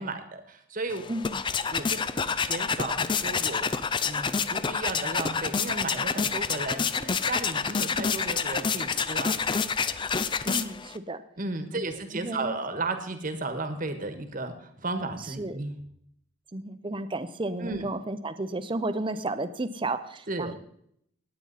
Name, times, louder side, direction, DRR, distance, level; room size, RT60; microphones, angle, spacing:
voice 1, 0.0-1.0 1.7-2.0 2.4-3.7 4.0-9.4 11.4-15.8 17.6-17.9 20.3-20.6, right 2 dB, 40° right, 8 dB, 1.4 m, -34 dB
sound 1, 0.9-11.0, left 5 dB, 25° left, 0.4 m, -28 dB
voice 2, 1.1-1.4 10.5-11.2 11.7-11.9 12.2-12.5 15.3-15.6 16.5-20.5, right 2 dB, 25° right, 11 dB, 0.7 m, -32 dB
18.5 x 8.8 x 4.1 m, 0.72 s
head